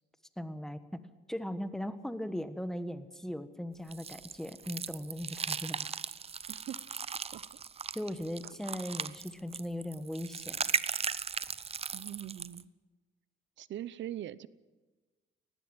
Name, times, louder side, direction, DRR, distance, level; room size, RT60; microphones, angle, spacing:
voice 1, 0.4-0.8 1.3-5.9 7.9-10.6, equal, ahead, 11 dB, 1.3 m, -38 dB
sound 1, 3.9-12.6, right 6 dB, 30° right, 0.6 m, -37 dB
voice 2, 6.5-6.8 7.3-7.4 11.9-12.7 13.6-14.5, right 12 dB, 70° right, 18 dB, 0.8 m, -41 dB
19.5 x 15.0 x 8.9 m, 1.3 s
cardioid pair, 90°, 20 cm